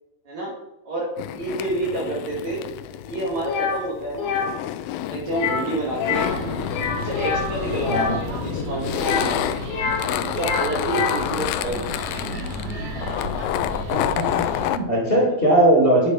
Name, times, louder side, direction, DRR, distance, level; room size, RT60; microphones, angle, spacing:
voice 1, 0.9-2.6 3.0-4.6 5.1-6.4 6.9-9.5 10.0-12.0 15.2-15.3, right 2 dB, 50° right, -3 dB, 2.9 m, -29 dB
sound 1, 1.2-14.8, left 13 dB, 80° left, 2.2 m, -29 dB
sound 2, 3.5-3.8 4.2-4.5 5.3-5.7 5.9-6.3 6.6-8.1 8.9-10.1 10.3-11.3, left 6 dB, 60° left, 2.8 m, -26 dB
sound 3, 6.1-14.7, equal, 70° right, 4.6 m, -32 dB
voice 2, 7.9-8.2 13.9-16.1, right 1 dB, 15° left, -4 dB, 3.1 m, -20 dB
10.0 x 8.2 x 5.1 m, 0.92 s
omnidirectional pair, 4.5 m